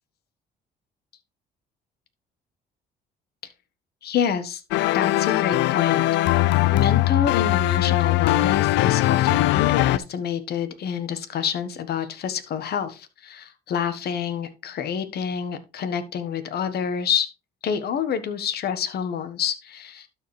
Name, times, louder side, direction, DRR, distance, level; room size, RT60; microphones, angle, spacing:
voice 1, 4.0-4.6 4.9-6.0 6.7-17.3 17.6-20.1, left 8 dB, 60° left, 11 dB, 1.3 m, -27 dB
sound 1, 4.7-10.0, left 16 dB, 80° left, 0.4 m, -20 dB
12.0 x 4.7 x 3.2 m, 0.28 s
supercardioid pair, 80°, 18 cm